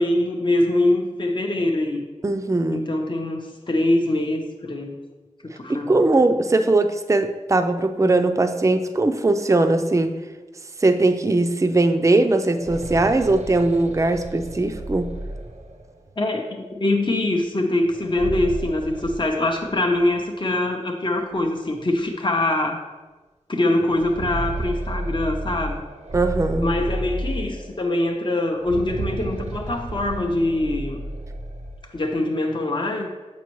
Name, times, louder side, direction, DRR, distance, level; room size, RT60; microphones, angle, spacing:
voice 1, 0.0-2.0 2.7-5.0 5.4-6.0 16.2-22.9 23.5-25.8 26.6-31.0 31.9-33.1, left 1 dB, 40° left, 2 dB, 0.6 m, -23 dB
voice 2, 2.2-2.9 5.7-10.2 10.8-15.1 26.1-26.7, right 2 dB, 25° right, 7 dB, 0.4 m, -20 dB
sound 1, 12.3-16.1 17.9-20.1 20.4-20.5 21.4-21.5 22.0-22.1 23.7-27.9 28.5-31.9, right 1 dB, 70° right, 0.6 m, -32 dB
7.0 x 5.1 x 3.0 m, 1.2 s
wide cardioid pair, 40°, 12 cm